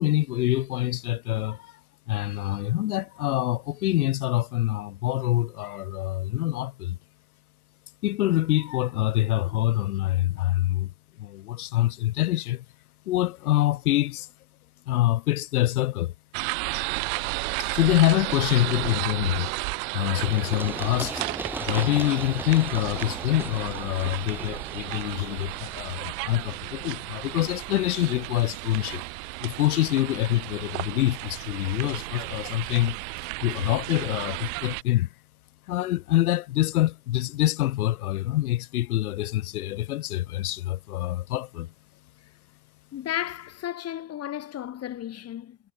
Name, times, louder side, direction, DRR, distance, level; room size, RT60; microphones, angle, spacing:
voice 1, 0.0-1.8 2.1-7.0 8.0-10.9 11.2-12.7 13.1-14.3 14.9-16.1 17.6-19.6 19.9-21.3 21.6-29.0 29.4-33.0 33.4-35.1 35.7-41.7, left 15 dB, 85° left, 2.2 m, -25 dB
sound 1, 16.3-34.8, right 40 dB or more, 65° right, 4.6 m, -33 dB
Run, 20.2-27.8, right 1 dB, 5° right, 4.5 m, -39 dB
voice 2, 42.9-45.6, left 11 dB, 35° left, 2.1 m, -33 dB
supercardioid pair, 105°, 43 cm